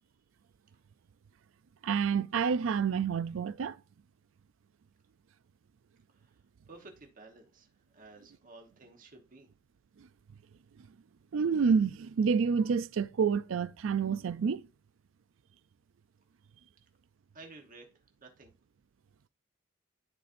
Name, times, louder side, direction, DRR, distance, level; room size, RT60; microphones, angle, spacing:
voice 1, 1.8-3.8 10.0-10.1 11.3-14.7, right 6 dB, 75° right, 0.4 m, -28 dB
voice 2, 6.1-9.5 17.3-18.5, right 3 dB, 45° right, 1.1 m, -54 dB
12.0 x 4.2 x 2.6 m
head